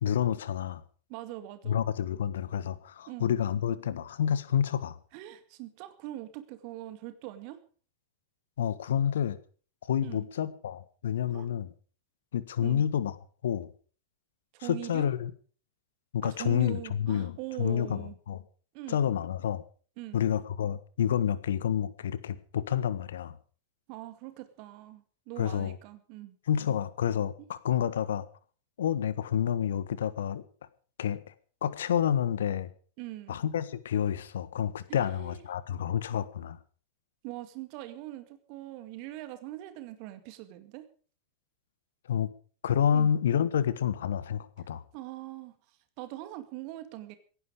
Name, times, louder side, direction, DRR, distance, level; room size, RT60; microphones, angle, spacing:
voice 1, 0.0-0.8 1.7-5.0 8.6-9.4 9.9-11.7 12.3-13.1 13.4-13.7 14.6-15.3 16.1-18.4 18.9-19.6 20.1-23.4 25.4-25.8 26.5-28.2 28.8-30.4 31.0-31.2 31.6-32.7 33.3-36.6 42.1-42.3 42.6-44.8, left 9 dB, 60° left, 16 dB, 1.4 m, -29 dB
voice 2, 1.1-1.8 3.1-3.3 5.1-7.6 10.0-10.3 11.3-11.5 12.6-12.8 14.5-15.1 16.2-18.2 18.7-19.1 20.0-20.2 23.9-26.4 33.0-33.4 34.9-35.4 37.2-40.9 42.9-43.1 44.9-45.6 46.0-47.1, right 15 dB, 45° right, 10 dB, 2.2 m, -42 dB
16.5 x 15.5 x 5.0 m, 0.42 s
figure-of-eight pair, 90°, 0 cm